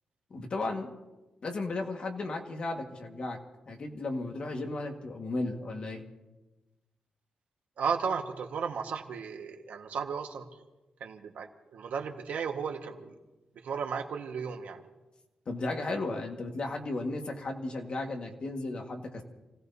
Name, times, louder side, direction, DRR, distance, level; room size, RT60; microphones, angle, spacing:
voice 1, 0.3-0.9 1.4-3.4 3.7-6.0 15.5-19.2, left 2 dB, 40° left, 3 dB, 1.7 m, -34 dB
voice 2, 7.8-10.5 11.0-13.2 13.5-14.9, right 6 dB, 80° right, 4 dB, 1.5 m, -34 dB
29.0 x 17.0 x 2.7 m, 1.1 s
wide cardioid pair, 175°, 3 cm